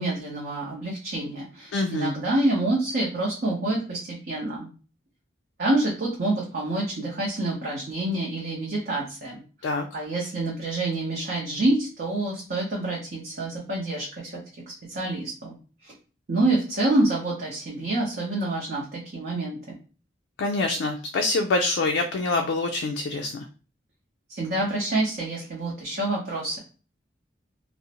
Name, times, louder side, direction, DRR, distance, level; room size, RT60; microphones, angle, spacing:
voice 1, 0.0-4.0 4.3-4.7 5.6-9.4 9.9-14.4 14.9-15.5 15.8-15.9 16.3-19.8 24.3-26.6, right 2 dB, 55° right, -4 dB, 0.7 m, -27 dB
voice 2, 1.7-2.1 9.6-9.9 20.4-23.5, left 3 dB, 85° left, 3 dB, 0.3 m, -25 dB
2.4 x 2.0 x 2.8 m, 0.36 s
head